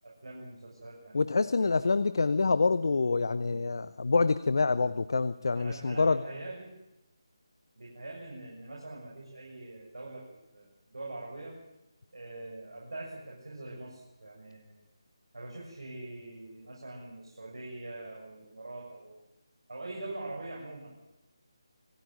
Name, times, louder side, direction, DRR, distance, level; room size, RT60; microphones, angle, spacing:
voice 1, 0.0-1.7 5.5-6.7 7.8-11.6 12.1-14.8 15.3-19.1 19.7-20.9, right 2 dB, 65° right, -3 dB, 7.4 m, -43 dB
voice 2, 1.1-6.2, left 4 dB, 50° left, 15 dB, 0.8 m, -26 dB
25.5 x 16.0 x 9.3 m, 0.93 s
figure-of-eight pair, 155°, 3 cm